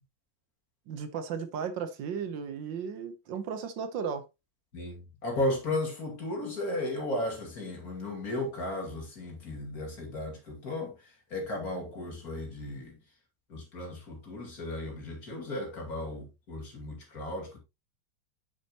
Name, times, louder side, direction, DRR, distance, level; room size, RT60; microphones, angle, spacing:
voice 1, 0.9-4.2, right 6 dB, 75° right, 1.6 m, -35 dB
voice 2, 4.7-13.0 13.5-17.6, left 1 dB, 50° left, 2.9 m, -35 dB
8.0 x 7.1 x 2.9 m
omnidirectional pair, 2.1 m